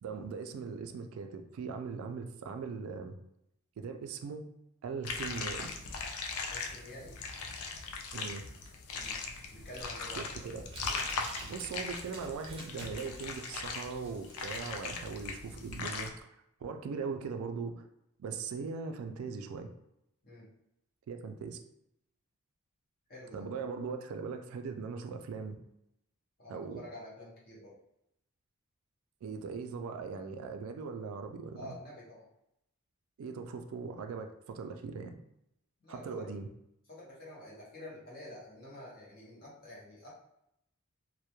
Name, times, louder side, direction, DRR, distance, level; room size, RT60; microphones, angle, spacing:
voice 1, 0.0-3.2 3.8-4.5 4.8-5.7 8.1-8.4 10.2-10.6 11.5-16.3 16.6-17.8 18.2-19.7 21.1-21.6 23.3-25.6 26.5-26.8 29.2-31.8 33.2-35.1 35.9-36.5, right 5 dB, 75° right, 7 dB, 0.3 m, -40 dB
sound 1, 5.0-16.1, left 4 dB, 80° left, 0.4 m, -39 dB
voice 2, 6.4-7.2 8.9-9.2 9.5-10.2 20.2-20.5 23.1-23.5 26.4-27.7 31.5-32.3 35.8-36.4 36.9-40.1, left 1 dB, 45° left, -6 dB, 0.9 m, -48 dB
Crumpling crinkling, 9.1-16.2, right 2 dB, 25° right, 0.5 m, -51 dB
2.2 x 2.1 x 2.9 m, 0.80 s
head